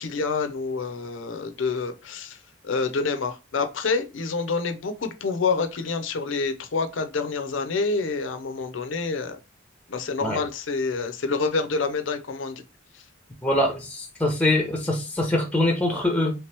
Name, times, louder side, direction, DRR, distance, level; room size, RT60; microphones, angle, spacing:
voice 1, 0.0-2.4 2.6-9.4 9.9-12.6, left 4 dB, 70° left, 0.6 m, -27 dB
voice 2, 13.4-16.3, left 1 dB, 5° left, 0.6 m, -23 dB
3.3 x 2.9 x 3.3 m
head